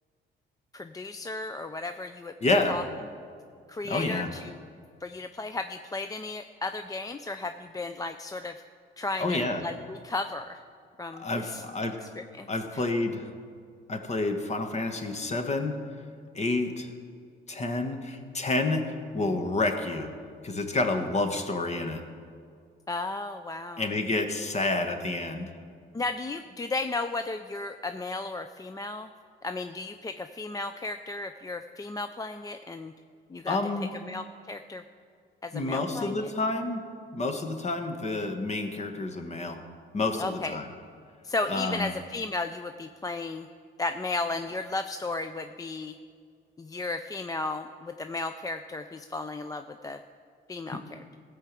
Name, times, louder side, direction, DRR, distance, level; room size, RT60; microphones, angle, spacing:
voice 1, 0.7-2.3 2.7-2.8 3.7-4.6 5.0-8.6 9.0-10.6 11.0-11.6 12.0-12.5 12.7-12.8 22.9-23.9 25.9-29.1 29.4-32.9 33.3-33.6 34.1-34.8 35.4-36.3 40.2-40.6 41.2-43.5 43.8-45.9 46.6-50.0 50.5-51.2, left 3 dB, 20° left, 8 dB, 0.4 m, -34 dB
voice 2, 2.4-2.8 3.8-4.3 9.2-9.6 11.2-12.0 12.5-13.3 13.9-15.7 16.3-16.9 17.5-20.1 20.4-22.0 23.8-25.5 33.5-33.9 35.5-36.8 37.1-39.6 39.9-40.7 41.5-41.9, left 2 dB, 35° left, 6 dB, 1.4 m, -29 dB
16.0 x 5.7 x 7.5 m, 2.2 s
cardioid pair, 90°, 20 cm